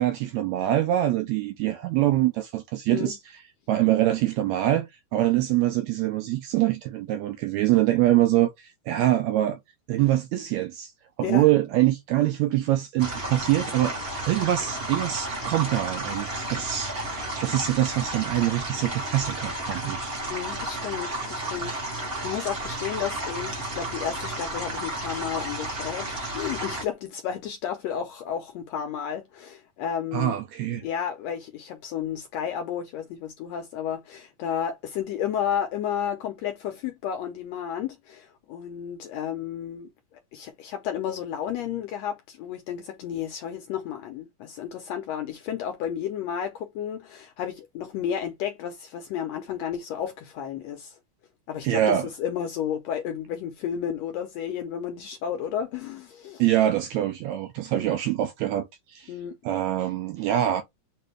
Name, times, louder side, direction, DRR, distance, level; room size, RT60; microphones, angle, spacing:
voice 1, 0.0-3.2 3.7-9.6 9.9-10.9 11.2-20.1 30.1-30.8 51.6-52.1 56.4-59.1 59.4-60.6, right 13 dB, 80° right, 1.6 m, -24 dB
sound 1, 13.0-26.8, right 1 dB, 45° right, 0.7 m, -32 dB
voice 2, 20.3-30.4 30.8-39.9 40.3-51.0 51.5-56.4 57.7-57.9 59.1-59.4, left 9 dB, 80° left, 1.6 m, -32 dB
6.5 x 2.5 x 3.2 m
omnidirectional pair, 3.6 m